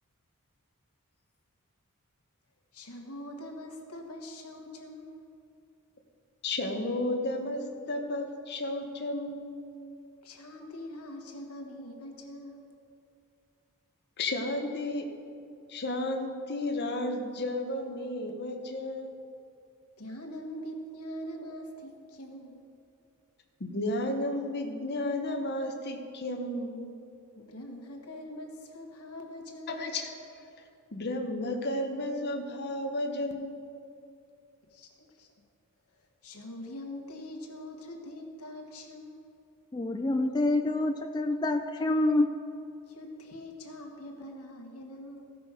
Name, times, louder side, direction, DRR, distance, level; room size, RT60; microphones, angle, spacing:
voice 1, 2.7-5.4 10.2-12.7 20.0-22.6 27.4-30.0 34.7-35.3 36.0-39.2 42.8-45.2, left 1 dB, 85° left, 2 dB, 1.5 m, -43 dB
voice 2, 6.4-9.5 14.2-15.1 15.7-19.2 23.6-26.9 29.7-30.1 30.9-33.7, left 1 dB, 50° left, 3 dB, 0.9 m, -33 dB
voice 3, 39.7-42.3, left 2 dB, 20° left, 3 dB, 0.4 m, -27 dB
15.5 x 6.0 x 4.9 m, 2.5 s
head